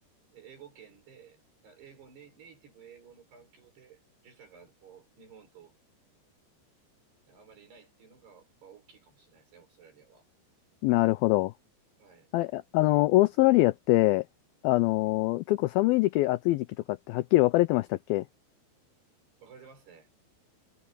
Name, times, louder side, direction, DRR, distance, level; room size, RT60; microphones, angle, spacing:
voice 1, 0.3-5.7 7.3-10.3 12.0-12.3 19.4-20.1, right 7 dB, 70° right, 8.7 m, -54 dB
voice 2, 10.8-11.5 12.3-14.3 14.6-18.2, left 18 dB, 90° left, 2.1 m, -24 dB
omnidirectional pair, 4.9 m